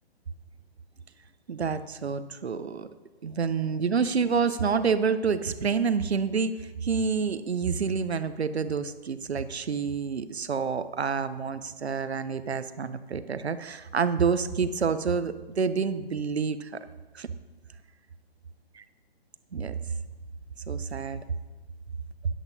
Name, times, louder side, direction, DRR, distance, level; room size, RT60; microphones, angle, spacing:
voice 1, 1.5-2.9 3.2-16.8 17.1-17.3 19.5-19.7 20.7-21.2, right 5 dB, 85° right, 12 dB, 0.7 m, -28 dB
13.5 x 10.5 x 2.7 m, 1.2 s
figure-of-eight pair, 135°, 31 cm